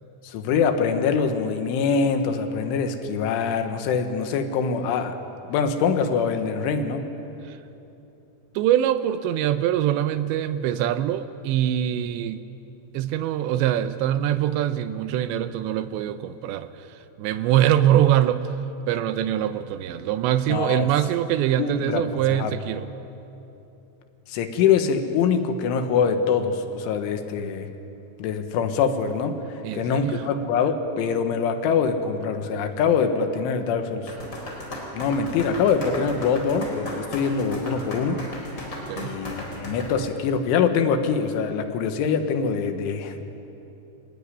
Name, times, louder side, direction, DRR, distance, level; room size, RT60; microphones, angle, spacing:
voice 1, 0.2-5.2 5.5-7.1 20.5-20.9 21.6-22.0 22.3-22.5 24.3-27.7 28.2-34.1 34.9-38.2 39.0-43.2, left 6 dB, 90° left, 7 dB, 3.9 m, -24 dB
voice 2, 8.6-12.4 12.9-18.5 18.9-22.9 29.6-30.2 38.9-39.2, right 11 dB, 80° right, 11 dB, 2.9 m, -23 dB
sound 1, 34.1-39.9, left 1 dB, 25° left, 4.7 m, -36 dB
27.0 x 16.5 x 9.9 m, 2.9 s
omnidirectional pair, 5.4 m